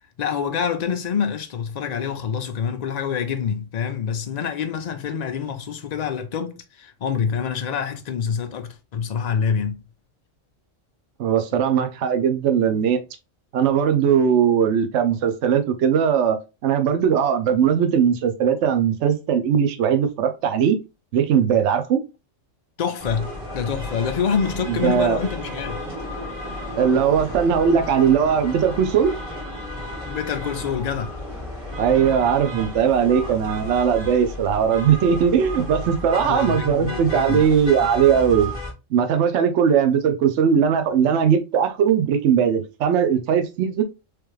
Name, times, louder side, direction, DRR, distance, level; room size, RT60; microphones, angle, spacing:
voice 1, 0.2-9.8 22.8-25.8 30.1-31.2 36.2-37.5, left 7 dB, 80° left, 0.3 m, -26 dB
voice 2, 11.2-13.0 13.5-20.8 21.1-22.0 24.7-25.2 26.8-29.1 31.8-38.5 38.9-43.8, right 7 dB, 70° right, 0.9 m, -19 dB
sound 1, 23.0-38.7, equal, 45° right, 1.8 m, -33 dB
3.4 x 3.1 x 3.1 m
omnidirectional pair, 1.3 m